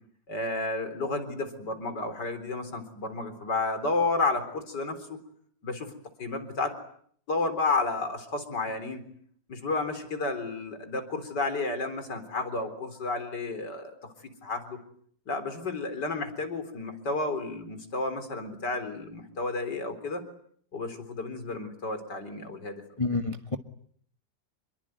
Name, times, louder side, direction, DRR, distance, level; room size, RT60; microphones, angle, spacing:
voice 1, 0.3-5.2 5.6-5.9 6.2-6.8 7.3-9.0 9.5-13.9 14.4-14.8 15.3-20.3 20.7-22.8, left 3 dB, 65° left, 8 dB, 4.6 m, -31 dB
voice 2, 23.0-23.6, left 3 dB, 20° left, 7 dB, 1.3 m, -28 dB
28.5 x 22.5 x 9.4 m, 0.64 s
omnidirectional pair, 2.0 m